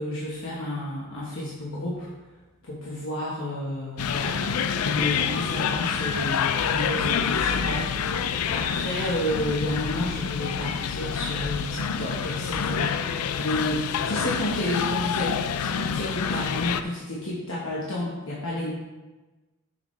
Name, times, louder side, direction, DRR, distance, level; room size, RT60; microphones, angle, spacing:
voice 1, 0.0-2.1 2.6-4.4 4.8-13.0 13.4-15.4 15.7-18.7, left 1 dB, 60° left, -7 dB, 1.3 m, -31 dB
sound 1, 4.0-16.8, left 7 dB, 85° left, 0.4 m, -27 dB
7.1 x 6.7 x 3.2 m, 1.2 s
head